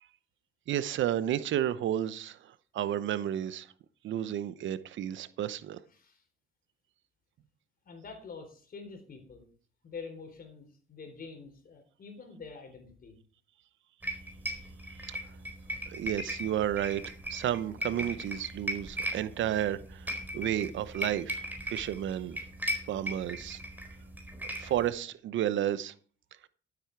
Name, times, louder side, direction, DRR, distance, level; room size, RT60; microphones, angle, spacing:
voice 1, 0.7-3.7 4.0-5.8 15.1-15.2 15.9-17.0 17.3-22.4 22.9-23.6 24.6-25.9, right 11 dB, 75° right, 0.8 m, -32 dB
voice 2, 5.9-6.2 7.8-9.5 9.8-13.2, left 5 dB, 45° left, 4.0 m, -46 dB
sound 1, 14.0-24.9, equal, 10° right, 4.2 m, -38 dB
12.5 x 8.7 x 4.6 m
cardioid pair, 90°, 20 cm